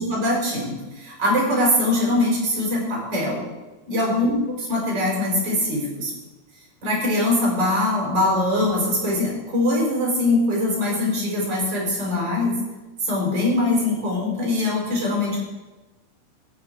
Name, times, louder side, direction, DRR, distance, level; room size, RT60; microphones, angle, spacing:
voice 1, 0.0-3.4 3.9-6.1 6.8-12.6 13.0-15.4, left 1 dB, 25° right, -3 dB, 5.1 m, -22 dB
15.0 x 10.5 x 4.6 m, 1.1 s
omnidirectional pair, 4.9 m